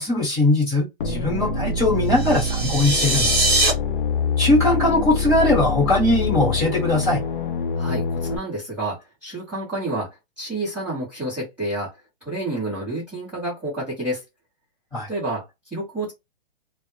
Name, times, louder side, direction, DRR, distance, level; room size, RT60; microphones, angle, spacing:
voice 1, 0.0-3.5 4.4-7.2 14.9-15.1, left 2 dB, 15° left, 1.0 m, -20 dB
sound 1, 1.0-8.4, left 4 dB, 55° left, 0.5 m, -25 dB
sound 2, 2.1-3.7, right 2 dB, 30° right, 0.9 m, -22 dB
voice 2, 7.7-14.2 15.1-16.1, right 1 dB, 5° right, 0.7 m, -29 dB
2.0 x 2.0 x 3.0 m
hypercardioid pair, 170°, 30 cm